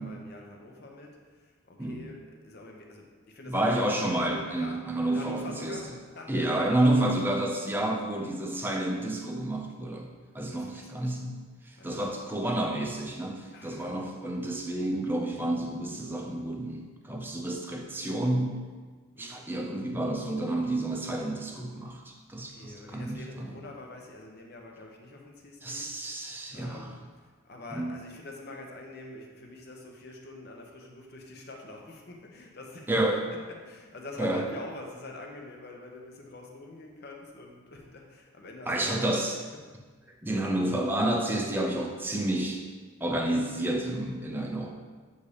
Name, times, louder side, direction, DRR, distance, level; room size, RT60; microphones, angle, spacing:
voice 1, 0.0-3.9 4.6-4.8 5.1-6.5 10.4-11.2 11.8-12.2 13.5-14.0 19.1-19.4 22.5-26.0 26.5-27.0 27.4-33.1 33.6-39.1, left 2 dB, 50° left, 1 dB, 0.8 m, -45 dB
voice 2, 3.5-5.8 6.3-10.1 10.3-18.6 19.2-23.5 25.6-26.9 27.7-28.0 32.9-33.2 34.2-34.4 38.7-39.4 40.2-42.6 43.0-44.7, right 1 dB, 10° right, 1 dB, 0.5 m, -30 dB
8.2 x 2.8 x 4.9 m, 1.4 s
head